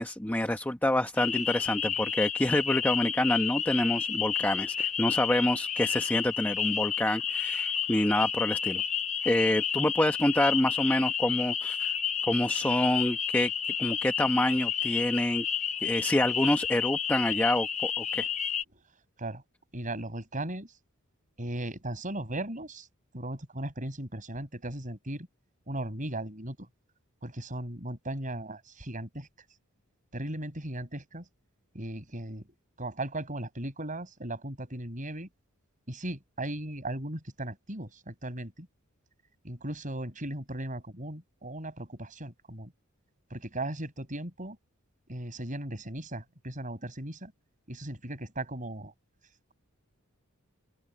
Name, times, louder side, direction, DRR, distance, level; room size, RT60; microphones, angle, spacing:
voice 1, 0.0-8.8 9.2-11.9 12.3-13.5 13.8-15.5 15.8-18.3, left 1 dB, 10° left, 1.0 m, -27 dB
sound 1, 1.2-18.6, left 8 dB, 30° left, 0.9 m, -31 dB
voice 2, 19.7-20.7 21.4-22.9 23.1-25.3 25.7-26.7 27.2-29.3 30.1-31.3 31.7-32.4 32.8-35.3 35.9-38.7 39.4-42.7 43.3-44.6 45.1-47.3 47.7-48.9, right 1 dB, 35° right, 6.6 m, -37 dB
open air
head